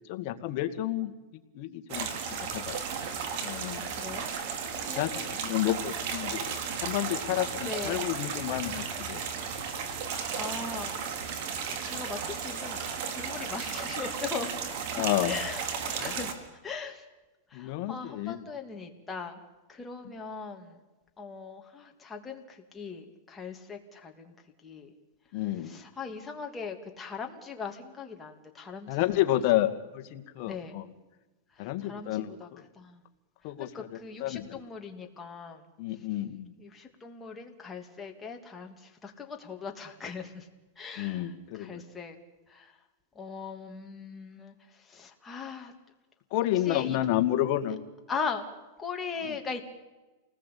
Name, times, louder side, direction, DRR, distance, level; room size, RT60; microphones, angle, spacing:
voice 1, 0.1-1.1 1.5-2.1 2.4-2.8 3.4-3.9 5.0-9.2 15.0-15.4 16.0-16.2 17.5-18.5 20.0-20.1 25.3-25.8 28.9-30.9 31.6-32.6 33.4-34.6 35.8-36.5 41.0-41.8 46.3-47.8 49.2-49.4, left 14 dB, 45° left, 7 dB, 2.2 m, -30 dB
sound 1, 1.9-16.3, right 6 dB, 55° right, 3.7 m, -34 dB
voice 2, 3.7-4.3 4.8-5.3 7.6-8.0 10.3-10.9 11.2-11.3 11.7-12.8 13.1-14.5 14.8-16.4 16.6-17.0 17.5-19.4 19.7-20.8 21.2-24.3 24.6-24.9 25.6-29.2 30.4-30.7 31.8-32.5 32.8-33.0 33.6-35.6 36.6-40.5 40.8-41.3 41.6-42.2 42.5-42.7 43.1-44.5 44.9-45.7 46.6-47.2 48.1-48.5 48.8-49.6, left 5 dB, 15° left, 2 dB, 2.9 m, -39 dB
29.0 x 19.5 x 8.7 m, 1.1 s
supercardioid pair, 150°, 0 cm